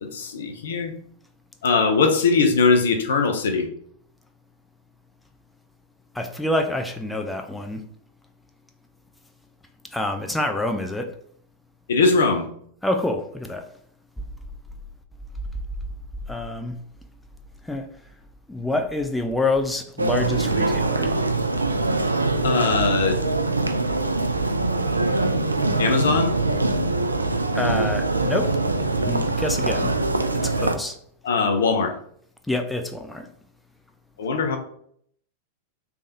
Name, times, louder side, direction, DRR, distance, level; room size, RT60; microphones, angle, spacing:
voice 1, 0.0-0.9 1.6-3.7 11.9-12.4 22.4-23.2 25.8-26.4 31.2-31.9 34.2-34.6, left 4 dB, 70° left, 6 dB, 0.6 m, -20 dB
voice 2, 6.1-7.9 9.9-11.2 12.8-13.7 16.3-16.8 17.6-17.9 18.5-21.2 27.5-28.6 29.1-29.9 30.3-31.0 32.5-33.3, left 2 dB, 5° left, 4 dB, 0.4 m, -27 dB
sound 1, 20.0-30.8, right 2 dB, 90° right, 0.3 m, -23 dB
3.5 x 3.3 x 2.7 m, 0.63 s
figure-of-eight pair, 95°, 0 cm